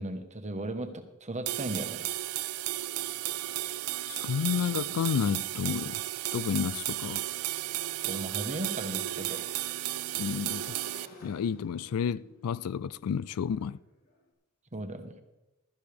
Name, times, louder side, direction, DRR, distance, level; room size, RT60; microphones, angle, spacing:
voice 1, 0.0-2.1 8.0-9.4 14.7-15.2, right 1 dB, 35° right, 1.2 m, -36 dB
sound 1, 1.5-11.1, right 15 dB, 80° right, 0.3 m, -34 dB
voice 2, 4.1-6.0 6.3-7.2 10.2-10.8 11.2-13.8, left 7 dB, 80° left, 0.4 m, -31 dB
Motorcycle / Engine, 8.0-14.2, left 1 dB, 65° left, 4.2 m, -55 dB
15.0 x 13.0 x 3.4 m
head